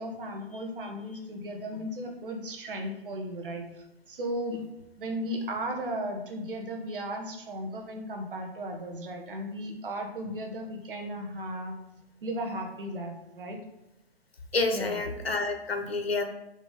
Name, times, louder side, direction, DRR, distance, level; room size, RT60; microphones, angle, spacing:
voice 1, 0.0-4.6 5.0-11.8 12.2-13.6 14.7-15.0, equal, 55° right, 3 dB, 1.5 m, -35 dB
voice 2, 14.5-16.2, left 3 dB, 70° left, 5 dB, 1.3 m, -28 dB
5.0 x 3.8 x 5.6 m, 0.94 s
figure-of-eight pair, 120°, 31 cm